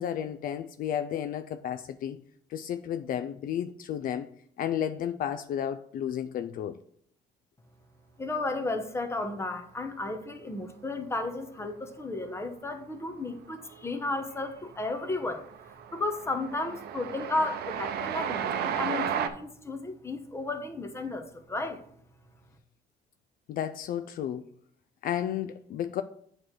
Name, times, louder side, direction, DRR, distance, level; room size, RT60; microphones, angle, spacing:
voice 1, 0.0-2.2 2.5-4.3 4.6-6.8 23.5-24.4 25.0-26.0, left 10 dB, 55° left, 0.4 m, -32 dB
voice 2, 8.2-15.5 15.9-21.8, left 2 dB, 15° left, 1.0 m, -33 dB
Train, 13.6-14.1 14.4-19.3, right 8 dB, 70° right, 0.7 m, -33 dB
8.5 x 3.3 x 6.1 m
cardioid pair, 110°, 17 cm